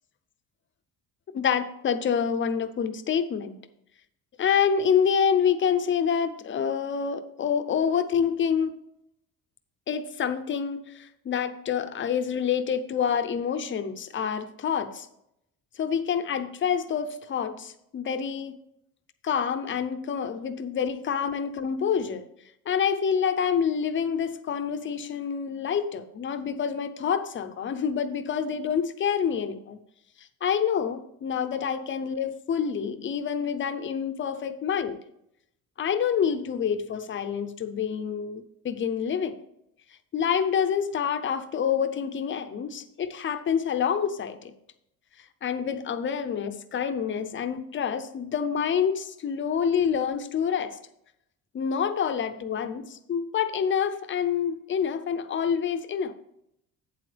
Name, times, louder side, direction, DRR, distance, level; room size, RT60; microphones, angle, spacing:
voice 1, 1.3-3.6 4.4-8.7 9.9-15.1 15.8-18.6 19.2-22.2 22.7-29.8 30.4-35.0 35.8-39.3 40.1-44.5 45.4-50.8 51.5-56.1, left 7 dB, 30° left, 10 dB, 0.6 m, -27 dB
8.5 x 7.8 x 3.3 m, 0.78 s
cardioid pair, 160°, 37 cm